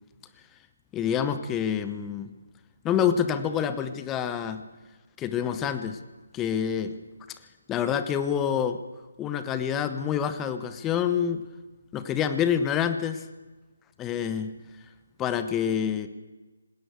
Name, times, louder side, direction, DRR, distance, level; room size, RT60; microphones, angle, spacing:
voice 1, 0.9-2.3 2.8-4.6 5.2-6.0 6.3-6.9 7.7-8.8 9.2-11.4 11.9-13.2 14.0-14.6 15.2-16.1, left 8 dB, 15° left, 10 dB, 0.9 m, -27 dB
20.0 x 17.0 x 8.1 m, 1.2 s
figure-of-eight pair, 145°, 0 cm